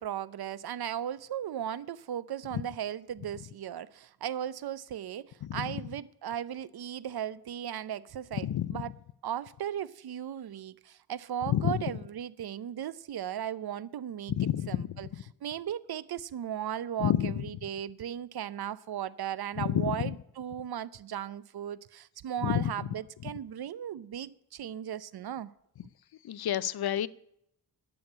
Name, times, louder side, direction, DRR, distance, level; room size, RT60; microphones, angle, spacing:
voice 1, 0.0-8.9 9.2-15.1 15.4-25.5, right 10 dB, 75° right, 0.7 m, -37 dB
voice 2, 5.4-5.8 8.4-8.8 11.5-11.8 14.4-14.9 17.0-17.4 19.6-20.0 22.4-22.7 26.2-27.1, left 11 dB, 75° left, 0.6 m, -29 dB
11.5 x 8.0 x 9.7 m
wide cardioid pair, 115°, 38 cm